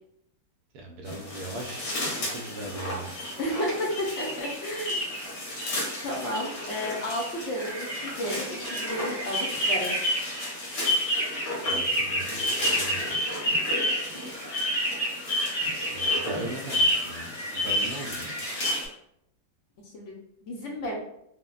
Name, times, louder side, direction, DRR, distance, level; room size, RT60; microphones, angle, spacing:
voice 1, 0.7-3.1 11.6-13.0 15.9-18.3, right 1 dB, 75° right, 1 dB, 1.0 m, -39 dB
sound 1, 1.1-18.9, equal, 85° left, 1.6 m, -29 dB
voice 2, 3.4-5.0 6.0-9.9 19.8-20.9, equal, 65° left, -1 dB, 0.8 m, -32 dB
3.5 x 2.0 x 2.3 m, 0.78 s
omnidirectional pair, 1.7 m